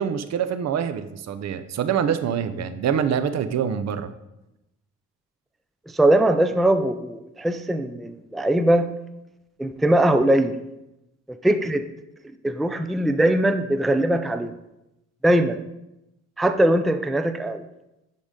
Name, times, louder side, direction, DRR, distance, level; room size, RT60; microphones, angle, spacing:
voice 1, 0.0-4.1, right 8 dB, 60° right, 11 dB, 0.6 m, -25 dB
voice 2, 5.9-8.9 9.6-10.6 11.3-11.8 12.4-14.5 15.2-15.6 16.4-17.6, right 1 dB, ahead, 8 dB, 0.3 m, -21 dB
10.0 x 3.9 x 3.7 m, 0.91 s
cardioid pair, 90°, 30 cm